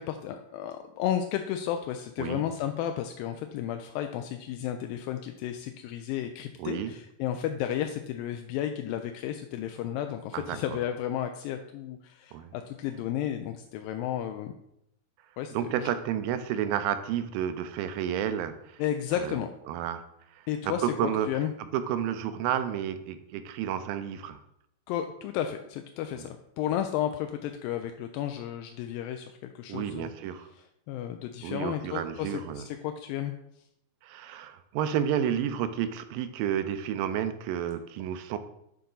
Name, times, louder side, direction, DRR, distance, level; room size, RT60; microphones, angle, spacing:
voice 1, 0.0-14.5 15.4-15.9 18.8-19.5 20.5-21.5 24.9-30.1 30.6-33.4, left 10 dB, 85° left, 6 dB, 2.3 m, -33 dB
voice 2, 6.6-6.9 10.3-10.8 12.3-12.5 15.5-18.8 19.2-19.4 19.7-20.0 20.3-20.4 20.8-21.3 21.7-24.4 26.1-26.2 29.7-30.5 31.4-32.7 34.0-38.4, right 9 dB, 85° right, 10 dB, 2.3 m, -31 dB
11.0 x 4.0 x 3.8 m, 0.78 s
omnidirectional pair, 4.1 m